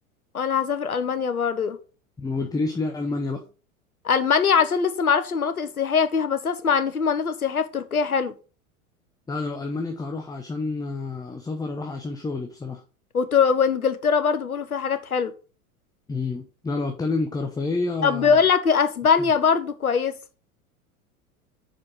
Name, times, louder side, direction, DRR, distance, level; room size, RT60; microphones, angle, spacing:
voice 1, 0.3-1.8 4.0-8.3 13.1-15.3 18.0-20.1, left 6 dB, 90° left, 0.8 m, -22 dB
voice 2, 2.2-3.4 9.3-12.8 16.1-18.4, left 3 dB, 10° left, 0.8 m, -29 dB
5.9 x 5.1 x 4.5 m
figure-of-eight pair, 85°, 42 cm